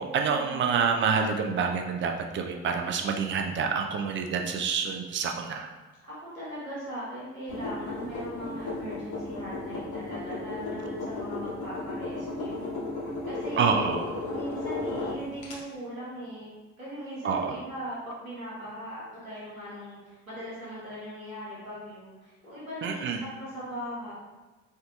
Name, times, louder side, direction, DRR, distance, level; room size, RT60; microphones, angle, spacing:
voice 1, 0.0-5.7 13.6-14.1 17.2-17.5 22.8-23.2, right 5 dB, 30° right, 4 dB, 0.4 m, -27 dB
voice 2, 6.1-14.0 14.3-24.1, equal, 90° right, -8 dB, 1.0 m, -39 dB
sound 1, 7.5-15.6, left 2 dB, 50° left, 1.0 m, -35 dB
4.4 x 2.6 x 2.3 m, 1.2 s
figure-of-eight pair, 45°, 40 cm